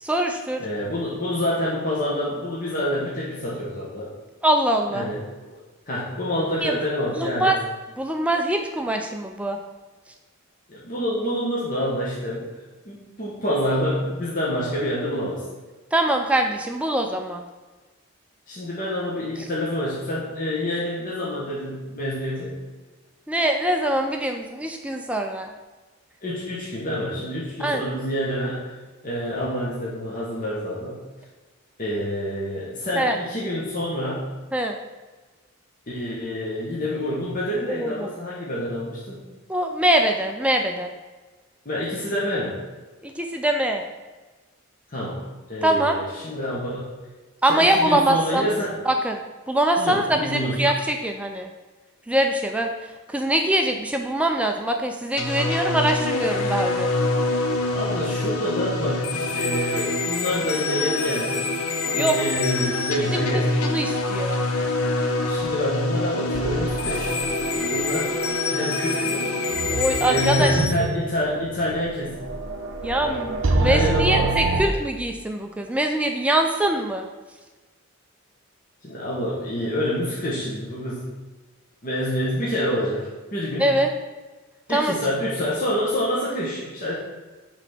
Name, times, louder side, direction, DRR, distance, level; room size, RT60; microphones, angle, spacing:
voice 1, 0.0-0.6 4.4-5.1 6.6-6.8 7.2-7.7 8.0-9.6 15.9-17.4 23.3-25.5 27.6-27.8 33.0-33.2 34.5-34.8 37.7-38.1 39.5-40.9 43.0-43.8 45.6-46.0 47.4-48.5 48.9-49.2 49.5-51.5 52.1-52.7 53.1-56.9 61.9-62.2 63.1-64.4 69.7-70.5 72.8-73.3 73.6-77.1 83.6-83.9 84.7-85.0, right 1 dB, 5° right, 3 dB, 0.3 m, -23 dB
voice 2, 0.6-4.1 4.9-5.2 5.9-7.6 10.7-12.5 12.8-15.4 18.5-22.6 26.2-28.7 29.0-31.0 31.8-34.3 35.9-39.2 41.6-42.6 44.9-45.2 45.5-46.9 47.5-48.8 49.8-50.7 57.7-61.5 61.8-63.5 65.2-67.2 67.5-68.2 68.5-69.3 70.1-72.2 73.0-73.2 73.5-74.8 78.8-81.1 81.8-83.7 84.7-86.9, equal, 40° left, -7 dB, 1.1 m, -27 dB
sound 1, 55.2-70.7, left 2 dB, 85° left, 0.7 m, -25 dB
sound 2, 66.3-74.6, right 2 dB, 60° right, 0.6 m, -28 dB
5.9 x 3.4 x 5.9 m, 1.2 s
head